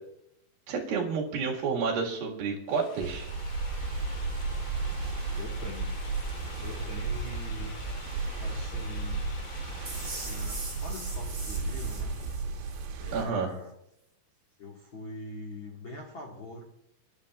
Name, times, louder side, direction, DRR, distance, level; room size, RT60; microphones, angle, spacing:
voice 1, 0.7-3.3 13.1-13.5, right 5 dB, 60° right, -1 dB, 3.4 m, -30 dB
Drill, 2.6-12.3, left 4 dB, 60° left, 2.5 m, -48 dB
sound 1, 3.0-13.3, right 3 dB, 90° right, 3.6 m, -34 dB
voice 2, 5.3-5.9 6.6-7.7 8.4-9.2 10.2-12.1 13.0-13.7 14.6-16.6, left 1 dB, 85° left, -1 dB, 1.1 m, -42 dB
sound 2, 9.9-12.9, right 2 dB, 20° right, 3.7 m, -41 dB
27.5 x 11.5 x 2.4 m, 0.80 s
omnidirectional pair, 5.2 m